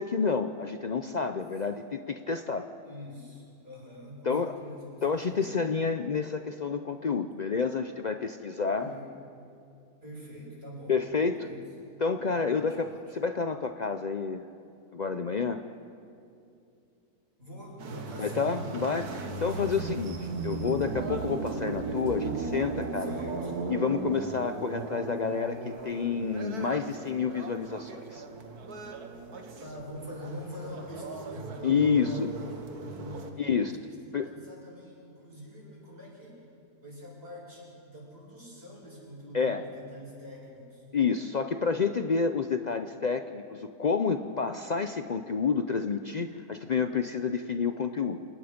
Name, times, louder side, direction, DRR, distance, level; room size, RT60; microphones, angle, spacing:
voice 1, 0.0-2.6 4.2-4.5 5.0-8.9 10.9-11.5 12.0-14.4 14.9-15.6 18.2-23.1 23.7-28.2 31.6-32.3 33.4-33.7 34.1-34.3 39.3-39.6 40.9-48.2, left 5 dB, 85° left, 8 dB, 0.3 m, -29 dB
voice 2, 2.8-5.5 8.8-9.1 10.0-11.6 12.4-13.2 17.4-18.8 22.9-23.5 29.6-36.4 36.8-40.8, left 1 dB, 40° right, -5 dB, 7.6 m, -44 dB
sound 1, 17.8-33.3, right 4 dB, 80° right, 1.9 m, -37 dB
28.0 x 19.0 x 5.2 m, 2.6 s
omnidirectional pair, 1.6 m